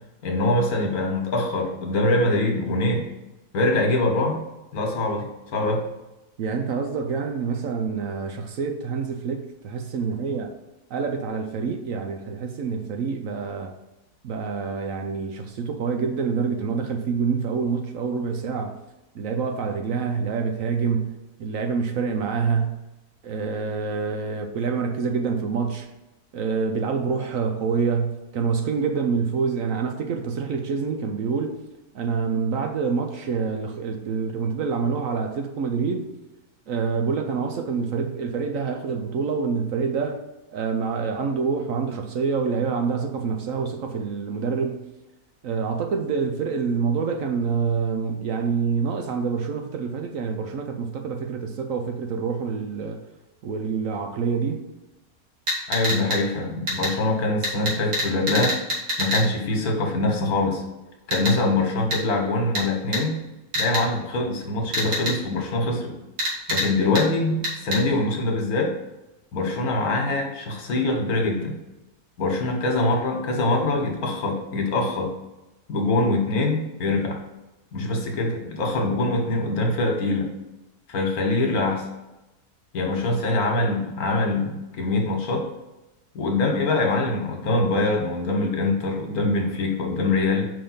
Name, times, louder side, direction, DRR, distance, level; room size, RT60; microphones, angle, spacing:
voice 1, 0.2-3.1 3.5-4.4 4.7-5.3 5.5-5.8 55.7-58.5 59.0-60.6 61.1-63.2 63.5-65.9 66.5-68.7 69.3-71.6 72.2-75.1 75.7-77.2 77.7-80.3 80.9-81.8 82.7-85.4 86.1-90.5, left 2 dB, 70° left, 1.7 m, -23 dB
voice 2, 6.4-10.5 10.9-13.7 14.2-18.8 19.1-22.8 23.2-25.9 26.3-31.6 31.9-36.1 36.7-40.2 40.5-44.9 45.4-53.0 53.4-54.7, right 5 dB, 65° right, 0.9 m, -26 dB
sound 1, 55.5-56.2 56.7-56.9 57.4-59.2 61.1-61.3 61.9-62.0 62.5-62.6 62.9-63.0 63.5-63.8 64.7-65.1 66.2-66.7 66.9-67.0 67.4-67.8, equal, 80° right, 2.3 m, -25 dB
5.4 x 3.5 x 5.5 m
omnidirectional pair, 1.7 m